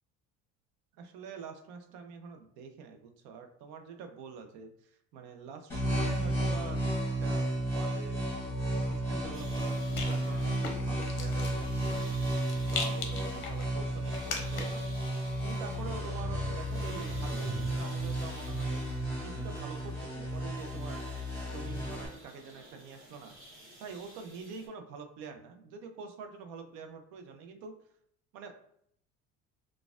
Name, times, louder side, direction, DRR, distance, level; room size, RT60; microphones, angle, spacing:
voice 1, 1.0-6.8 7.2-8.2 8.8-12.2 12.7-14.9 15.4-18.9 19.2-21.0 21.5-23.4 23.8-27.7 28.3-28.5, right 5 dB, 85° right, 6 dB, 0.6 m, -46 dB
sound 1, 5.7-22.1, right 1 dB, 5° left, 1.1 m, -33 dB
Rattle, 8.8-14.9, left 4 dB, 40° left, 0.6 m, -41 dB
sound 2, 9.3-24.7, right 1 dB, 30° right, 1.0 m, -54 dB
4.0 x 2.3 x 2.4 m, 0.69 s
cardioid pair, 175°, 29 cm